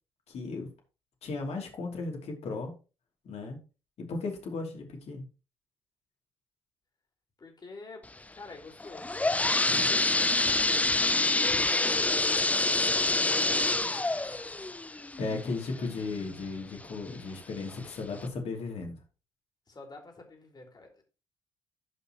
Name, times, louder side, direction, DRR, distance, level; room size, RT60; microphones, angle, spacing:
voice 1, 0.3-0.7 1.2-2.7 3.2-3.6 4.0-5.3 9.7-10.1 11.4-11.6 15.2-19.0, left 3 dB, 50° left, 2 dB, 3.0 m, -36 dB
voice 2, 7.4-12.6 13.1-14.8 19.7-21.0, left 3 dB, 30° left, 2 dB, 3.3 m, -47 dB
sound 1, 8.8-16.4 16.9-17.0 17.7-17.8 18.2-18.3, left 2 dB, 10° left, 0.5 m, -27 dB
16.0 x 5.5 x 3.0 m, 0.33 s
figure-of-eight pair, 50°, 14 cm